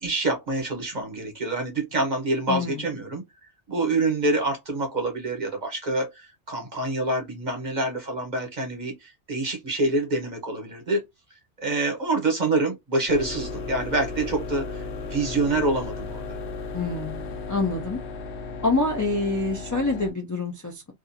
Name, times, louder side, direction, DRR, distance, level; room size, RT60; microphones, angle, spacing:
voice 1, 0.0-3.2 3.7-11.0 11.6-16.2, right 2 dB, 40° right, 1.1 m, -26 dB
voice 2, 2.5-2.8 16.7-18.0 18.6-20.9, left 3 dB, 30° left, 0.3 m, -26 dB
sound 1, 13.1-20.1, left 3 dB, 70° left, 1.0 m, -35 dB
2.6 x 2.5 x 2.6 m
omnidirectional pair, 1.2 m